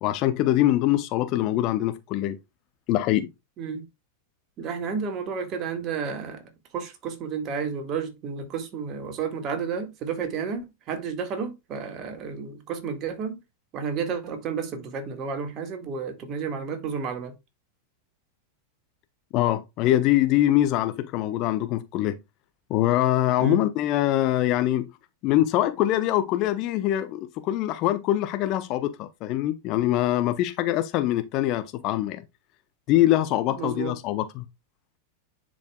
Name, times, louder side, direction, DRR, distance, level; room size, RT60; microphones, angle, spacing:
voice 1, 0.0-2.4 2.9-3.3 19.3-22.2 22.7-24.9 25.2-32.2 32.9-34.4, left 14 dB, 40° left, 0.7 m, -23 dB
voice 2, 4.6-13.4 13.7-17.3 23.4-23.6 33.5-33.9, right 6 dB, 35° right, 1.8 m, -31 dB
10.5 x 5.1 x 2.3 m
figure-of-eight pair, 90°, 0 cm